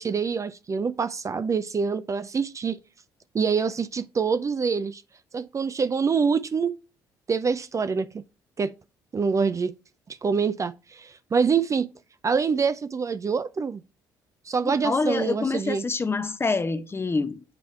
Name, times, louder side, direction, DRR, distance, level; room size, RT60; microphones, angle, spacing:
voice 1, 0.0-2.8 3.3-5.0 5.3-6.7 7.3-8.2 8.6-8.7 9.1-9.7 10.1-11.9 12.2-13.8 14.5-15.8, right 5 dB, 30° right, 0.4 m, -25 dB
voice 2, 14.6-17.4, left 3 dB, 25° left, 0.7 m, -26 dB
8.2 x 3.4 x 4.2 m
hypercardioid pair, 50°, 10 cm